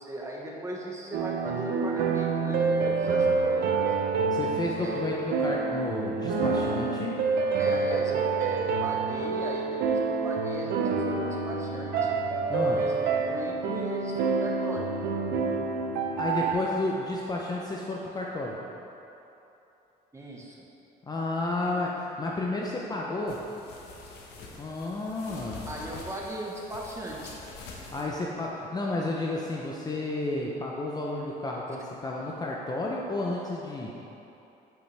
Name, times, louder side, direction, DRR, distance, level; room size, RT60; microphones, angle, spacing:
voice 1, 0.0-4.0 4.8-5.1 7.6-12.2 12.8-14.9 20.1-20.6 25.7-27.3, right 1 dB, 15° right, -2 dB, 1.2 m, -38 dB
sound 1, 1.1-16.5, right 4 dB, 80° right, 0.7 m, -27 dB
voice 2, 4.3-7.2 12.5-12.8 16.2-18.6 21.1-23.4 24.6-25.7 27.6-34.0, left 2 dB, 25° left, -2 dB, 0.6 m, -32 dB
sound 2, 23.3-28.0, left 3 dB, 80° left, 1.1 m, -45 dB
9.1 x 5.6 x 3.4 m, 3.0 s
cardioid pair, 110°, 17 cm